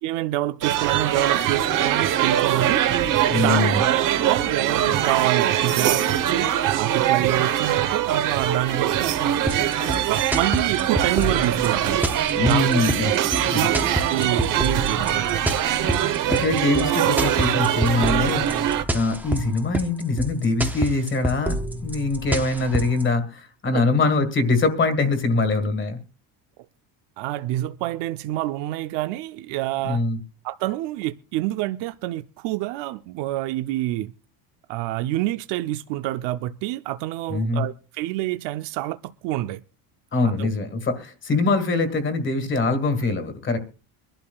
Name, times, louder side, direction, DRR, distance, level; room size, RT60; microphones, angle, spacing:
voice 1, 0.0-2.9 3.3-3.7 4.2-9.4 9.9-12.0 12.4-12.7 13.5-15.3 23.7-23.8 27.2-30.0 30.4-34.1 34.7-39.6 40.2-40.5, right 15 dB, 75° right, 0.7 m, -27 dB
sound 1, 0.6-18.8, right 11 dB, 50° right, 1.0 m, -22 dB
voice 2, 3.3-3.8 12.3-13.9 16.0-26.0 29.8-30.2 37.3-37.6 40.1-43.6, left 3 dB, 25° left, 1.7 m, -23 dB
sound 2, 9.5-23.0, right 1 dB, 5° right, 0.5 m, -28 dB
23.5 x 12.0 x 2.3 m
cardioid pair, 160°, 43 cm